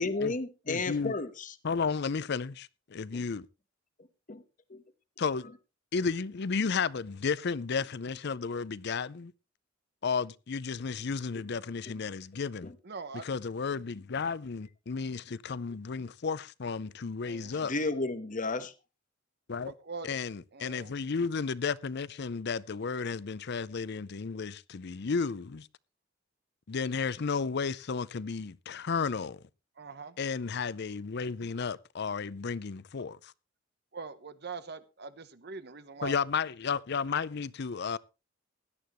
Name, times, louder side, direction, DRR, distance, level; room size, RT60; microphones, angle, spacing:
voice 1, 0.0-1.5 3.1-3.2 4.3-4.4 4.7-4.8 11.9-12.0 12.6-12.7 17.6-18.7, left 3 dB, 40° left, 1.1 m, -33 dB
voice 2, 0.7-1.1 1.6-3.5 5.2-5.5 5.9-9.3 10.0-12.7 13.2-17.7 19.5-19.7 20.0-25.7 26.7-29.4 30.2-33.3 36.0-38.0, left 5 dB, 60° left, 0.6 m, -33 dB
voice 3, 12.8-13.2 17.3-17.7 19.6-20.1 20.5-20.9 29.8-30.1 33.9-36.2, right 4 dB, 55° right, 0.9 m, -42 dB
17.0 x 11.5 x 3.1 m
head